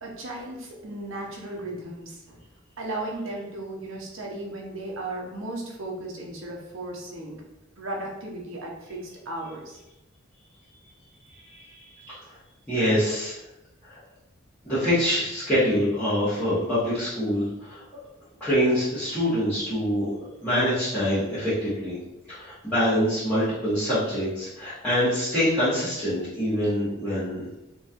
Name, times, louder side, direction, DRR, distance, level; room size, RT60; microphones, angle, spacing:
voice 1, 0.0-2.4 2.8-7.4 7.8-9.8 18.3-18.5, right 2 dB, 75° right, -1 dB, 0.9 m, -35 dB
voice 2, 11.4-12.2 12.7-13.3 13.8-14.0 14.6-17.8 18.4-20.1 20.4-22.0 22.3-27.5, equal, 10° left, -16 dB, 1.3 m, -25 dB
4.1 x 3.0 x 2.5 m, 0.92 s
head